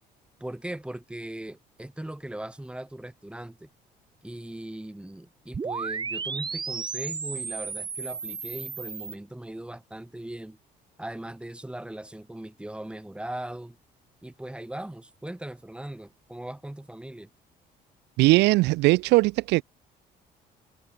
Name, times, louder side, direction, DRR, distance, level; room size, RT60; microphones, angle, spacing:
voice 1, 0.4-3.7 4.2-10.6 11.0-13.8 14.2-17.3, right 1 dB, 5° right, 4.8 m, -39 dB
sound 1, 5.5-9.1, right 5 dB, 25° right, 1.1 m, -33 dB
voice 2, 18.2-19.6, right 21 dB, 85° right, 0.7 m, -20 dB
cardioid pair, 110°, 17 cm